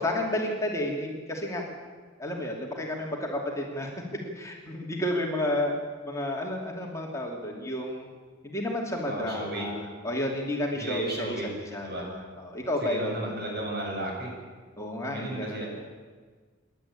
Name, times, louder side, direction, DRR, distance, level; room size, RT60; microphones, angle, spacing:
voice 1, 0.0-1.8 2.2-5.8 6.1-8.1 8.4-11.4 11.7-13.3 14.8-15.6, left 1 dB, 15° left, -1 dB, 2.8 m, -31 dB
voice 2, 9.0-9.7 10.7-11.5 11.8-12.1 12.8-14.3 15.0-15.7, right 1 dB, 55° right, -1 dB, 7.7 m, -34 dB
27.5 x 11.5 x 8.5 m, 1.5 s
head